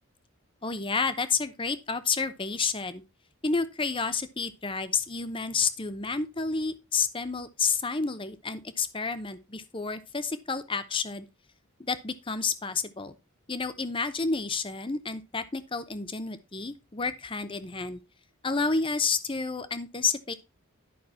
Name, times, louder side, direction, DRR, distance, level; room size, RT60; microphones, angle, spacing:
voice 1, 0.6-3.0 3.4-11.3 11.8-13.1 13.5-18.0 18.4-20.3, left 4 dB, 25° left, 0.8 m, -30 dB
11.0 x 6.0 x 4.2 m
head